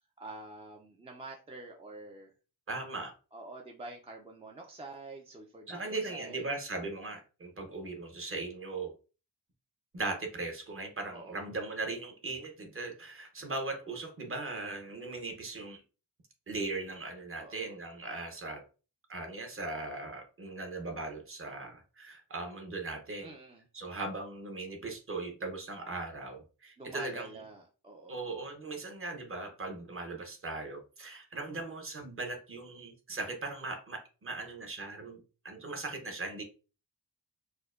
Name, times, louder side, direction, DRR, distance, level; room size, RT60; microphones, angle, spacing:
voice 1, 0.2-2.3 2.9-6.5 11.1-11.4 17.4-17.8 23.2-23.6 26.8-28.3, right 2 dB, 15° right, 0 dB, 0.3 m, -47 dB
voice 2, 2.7-3.1 5.7-8.9 9.9-15.8 16.5-18.6 19.1-23.3 23.7-27.3 28.1-35.2 35.4-36.4, right 3 dB, 35° right, 3 dB, 0.7 m, -39 dB
4.3 x 2.2 x 2.4 m, 0.34 s
wide cardioid pair, 155°, 39 cm